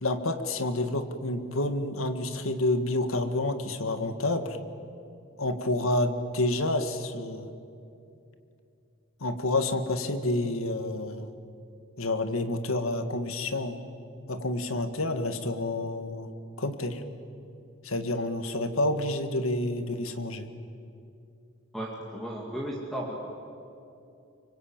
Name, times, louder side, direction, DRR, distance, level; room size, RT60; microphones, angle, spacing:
voice 1, 0.0-4.6 5.4-7.5 9.2-11.3 12.0-13.8 14.3-16.3 16.6-17.0 17.8-20.5, left 2 dB, 85° left, 9 dB, 1.8 m, -29 dB
voice 2, 21.7-23.3, right 1 dB, ahead, -2 dB, 2.4 m, -35 dB
26.0 x 24.0 x 8.9 m, 2.6 s
head